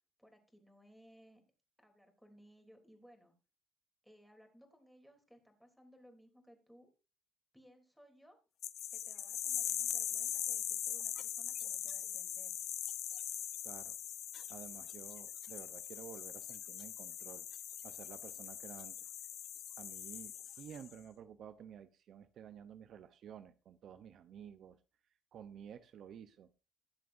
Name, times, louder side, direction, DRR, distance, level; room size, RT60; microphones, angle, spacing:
voice 1, 0.2-1.4 1.8-3.3 4.0-6.9 7.5-8.4 8.9-12.6, equal, ahead, 3 dB, 3.3 m, -62 dB
sound 1, 8.6-20.9, left 10 dB, 60° left, 1.0 m, -41 dB
voice 2, 13.6-13.9 14.5-17.5 17.8-19.1 19.8-24.8 25.3-26.5, right 8 dB, 55° right, 10 dB, 0.8 m, -52 dB
20.5 x 7.5 x 2.7 m, 0.29 s
cardioid pair, 130°, 0 cm